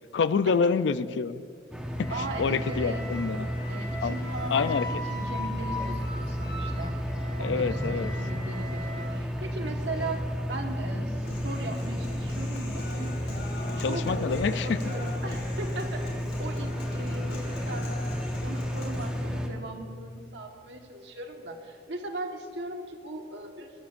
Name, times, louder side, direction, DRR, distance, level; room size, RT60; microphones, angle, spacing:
voice 1, 0.1-1.4 2.0-2.1 2.4-3.5 4.0-4.1 4.5-4.9 7.4-8.1 13.8-14.8, left 5 dB, 90° left, 14 dB, 0.4 m, -27 dB
sound 1, 1.7-19.5, equal, 5° right, 1.0 m, -32 dB
Wind instrument woodwind instrument, 2.0-9.1, left 1 dB, 20° left, 3.1 m, -40 dB
voice 2, 2.1-3.1 3.7-6.9 7.4-13.1 13.7-17.9 18.4-23.7, right 2 dB, 80° right, 3 dB, 1.4 m, -38 dB
Human voice, 11.2-19.2, left 1 dB, 70° left, 2.8 m, -41 dB
21.5 x 12.5 x 2.6 m, 2.3 s
head